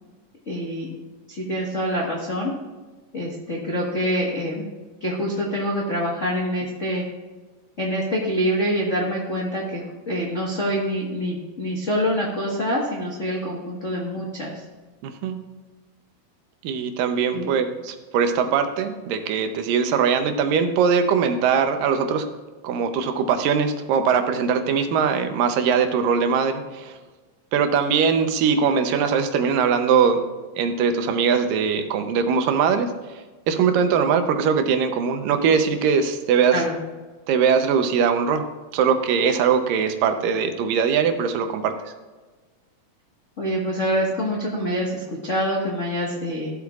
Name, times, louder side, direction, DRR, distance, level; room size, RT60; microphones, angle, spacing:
voice 1, 0.5-0.9 1.3-2.5 3.1-4.7 5.0-7.0 7.8-14.6 17.3-17.5 36.5-36.8 43.4-46.5, equal, 60° left, -4 dB, 0.7 m, -25 dB
voice 2, 15.0-15.4 16.6-22.3 22.6-27.0 27.5-30.2 30.6-32.9 33.5-36.6 37.3-38.5 38.7-41.8, right 6 dB, 85° right, 7 dB, 2.5 m, -21 dB
14.5 x 8.0 x 2.4 m, 1.3 s
omnidirectional pair, 3.9 m